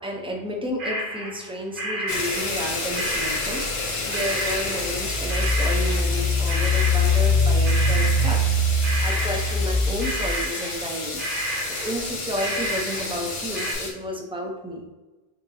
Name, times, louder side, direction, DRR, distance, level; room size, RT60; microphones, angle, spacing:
voice 1, 0.0-3.6 4.1-8.4 8.8-11.2 11.7-14.9, equal, 5° right, 0 dB, 0.5 m, -31 dB
sound 1, 0.8-1.5 1.8-3.9 4.1-13.3 13.5-13.7, right 1 dB, 55° right, 1.1 m, -31 dB
sound 2, 2.1-13.9, left 3 dB, 75° left, 1.1 m, -31 dB
Engine, 3.7-3.8 4.4-10.4, left 2 dB, 85° right, 1.6 m, -22 dB
6.5 x 2.9 x 2.7 m, 1.2 s
omnidirectional pair, 1.1 m